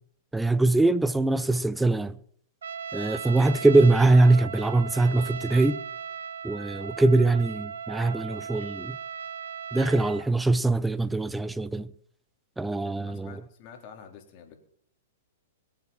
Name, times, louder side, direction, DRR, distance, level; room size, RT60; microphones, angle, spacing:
voice 1, 0.3-2.2 2.9-5.8 6.4-9.0 9.7-11.9 12.6-13.4, right 2 dB, 5° right, 0.7 m, -22 dB
Trumpet, 2.6-10.3, right 7 dB, 80° right, 0.7 m, -37 dB
voice 2, 13.0-14.6, left 7 dB, 45° left, 3.7 m, -48 dB
21.5 x 7.9 x 7.2 m
hypercardioid pair, 115°, 0 cm